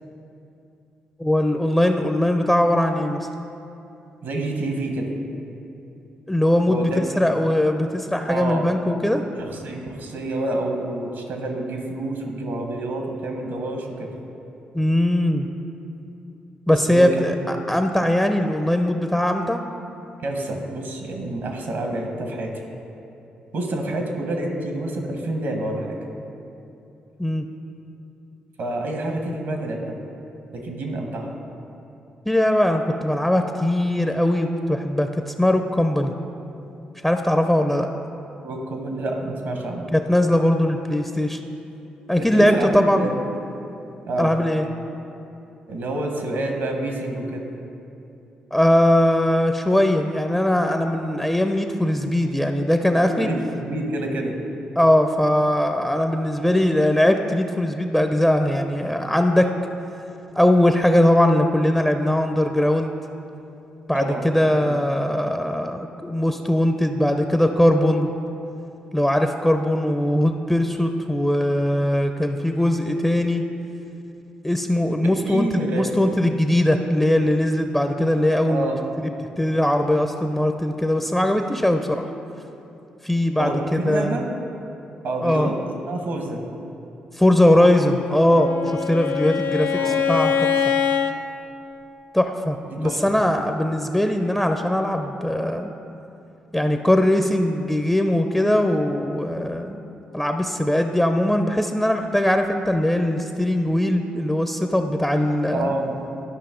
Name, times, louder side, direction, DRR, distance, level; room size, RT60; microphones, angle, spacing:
voice 1, 1.2-3.3 6.3-9.2 14.7-15.5 16.7-19.6 27.2-27.4 32.3-36.1 37.0-37.9 39.9-41.4 42.1-43.1 44.2-44.7 48.5-53.3 54.8-59.5 60.3-62.9 63.9-68.1 68.9-73.4 74.4-78.7 79.4-82.1 83.0-84.2 85.2-85.5 87.1-90.7 92.1-95.7 96.5-99.8 100.1-105.7, left 1 dB, 10° left, 6 dB, 0.5 m, -20 dB
voice 2, 4.2-5.1 6.7-7.2 8.3-8.7 9.4-14.1 16.9-17.3 20.2-22.5 23.5-26.0 28.6-29.9 30.5-31.3 38.4-39.9 42.2-43.2 44.1-44.3 45.7-47.5 53.1-54.3 63.9-64.7 75.0-76.0 78.5-78.8 83.4-84.3 85.0-85.5 85.8-86.4 89.7-90.1 92.7-93.0 105.5-106.0, right 2 dB, 75° right, 2 dB, 1.2 m, -28 dB
Bowed string instrument, 88.0-91.2, left 7 dB, 80° left, 0.5 m, -23 dB
11.5 x 5.3 x 3.8 m, 2.8 s
supercardioid pair, 55°, 3 cm